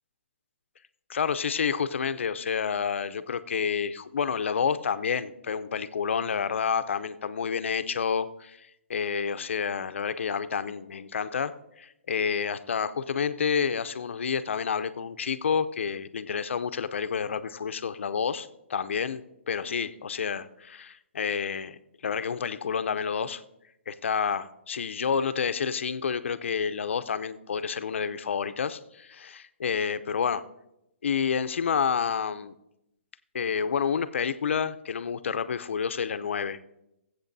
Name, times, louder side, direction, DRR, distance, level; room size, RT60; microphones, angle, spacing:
voice 1, 1.1-21.8 22.0-23.4 23.9-30.4 31.0-32.5 33.3-36.6, left 6 dB, 75° left, 12 dB, 0.6 m, -29 dB
20.5 x 8.0 x 2.7 m, 0.86 s
hypercardioid pair, 140°, 7 cm